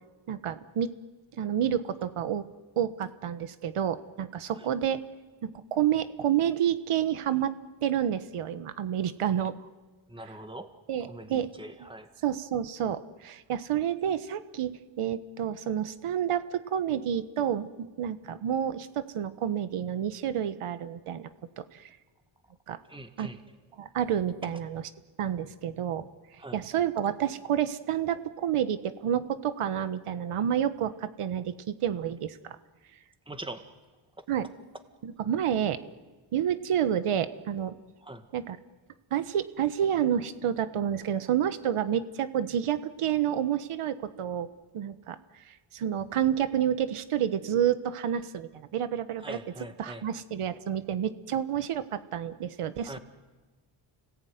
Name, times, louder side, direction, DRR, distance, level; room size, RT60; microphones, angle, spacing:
voice 1, 0.3-0.9 1.4-2.5 2.8-5.0 5.4-7.5 7.8-9.5 10.9-11.5 12.2-21.3 21.6-21.9 22.7-22.8 23.2-23.3 23.8-24.8 25.2-26.1 26.5-31.5 31.8-32.6 34.3-34.4 35.0-35.8 36.3-37.8 38.3-38.6 39.1-44.5 44.7-45.2 45.5-49.4 49.8-53.0, right 9 dB, 85° right, 11 dB, 1.4 m, -29 dB
voice 2, 10.1-10.7 11.0-12.1 22.9-23.4 26.4-26.6 33.3-33.7 34.2-34.3 38.0-38.3 49.2-50.1 52.8-53.0, right 1 dB, 10° right, 7 dB, 1.9 m, -42 dB
30.0 x 19.0 x 9.5 m, 1.2 s
wide cardioid pair, 130°, 50 cm